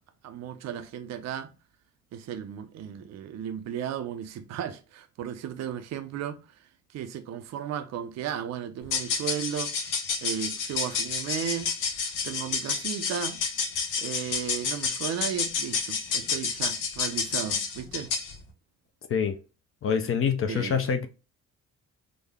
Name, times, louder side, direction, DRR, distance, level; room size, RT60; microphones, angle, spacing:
voice 1, 0.2-1.5 2.1-6.4 6.9-9.7 10.2-11.7 12.0-13.4 14.0-18.1 20.5-20.8, right 9 dB, 60° right, 0.5 m, -35 dB
sound 1, 8.8-18.4, left 5 dB, 90° left, 0.9 m, -30 dB
voice 2, 19.8-21.1, left 7 dB, 45° left, 0.5 m, -26 dB
3.7 x 2.1 x 3.4 m
cardioid pair, 90°, 30 cm